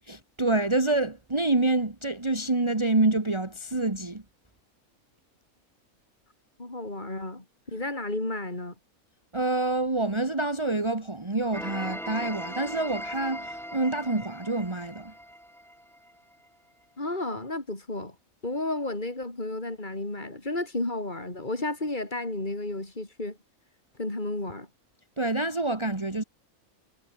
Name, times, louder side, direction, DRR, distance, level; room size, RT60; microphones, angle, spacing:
voice 1, 0.1-4.2 9.3-15.1 25.2-26.2, right 2 dB, 20° right, 1.8 m, -27 dB
voice 2, 6.6-8.7 17.0-18.1 18.4-23.4 24.0-24.7, left 2 dB, 30° left, 4.9 m, -32 dB
sound 1, 11.5-16.3, equal, ahead, 3.5 m, -39 dB
omnidirectional pair, 1.5 m